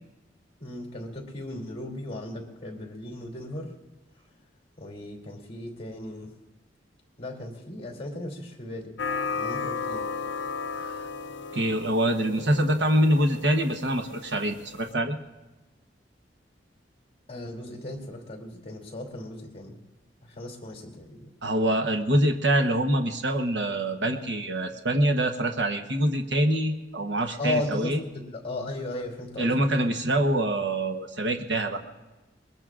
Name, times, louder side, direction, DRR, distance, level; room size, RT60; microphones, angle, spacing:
voice 1, 0.6-3.7 4.8-6.3 7.2-8.9 9.3-10.1 17.3-19.8 20.2-21.3 27.4-29.7, left 1 dB, 35° left, 2 dB, 2.8 m, -36 dB
sound 1, 9.0-14.9, left 5 dB, 80° left, 0.5 m, -35 dB
voice 2, 11.5-15.2 21.4-28.0 29.4-31.8, right 1 dB, 75° right, 5 dB, 1.0 m, -25 dB
22.0 x 21.0 x 2.5 m, 1.1 s
head